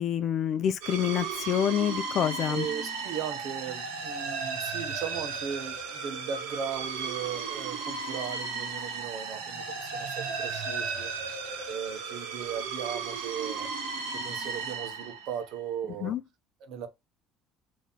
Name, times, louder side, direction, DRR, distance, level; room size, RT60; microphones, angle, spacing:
voice 1, 0.0-2.7 16.0-16.2, left 9 dB, 55° left, 0.5 m, -27 dB
sound 1, 0.8-15.6, right 5 dB, 85° right, 1.4 m, -35 dB
voice 2, 2.5-11.1 11.7-13.7 14.1-16.2 16.6-16.9, right 7 dB, 65° right, 1.1 m, -37 dB
3.6 x 3.1 x 4.2 m
supercardioid pair, 80°, 0 cm